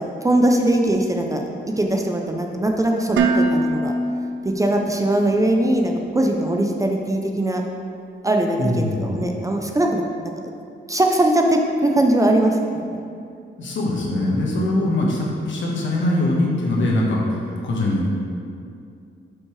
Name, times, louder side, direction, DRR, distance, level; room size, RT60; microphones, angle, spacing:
voice 1, 0.0-3.9 4.4-7.6 8.2-10.5 10.9-13.0, right 1 dB, 15° right, 2 dB, 0.4 m, -21 dB
Dishes pots and pans, 3.2-5.2, right 2 dB, 90° right, 0.5 m, -23 dB
voice 2, 8.6-9.2 13.6-18.1, left 1 dB, 75° left, -3 dB, 1.3 m, -22 dB
7.2 x 5.3 x 3.2 m, 2.4 s
wide cardioid pair, 145°, 20 cm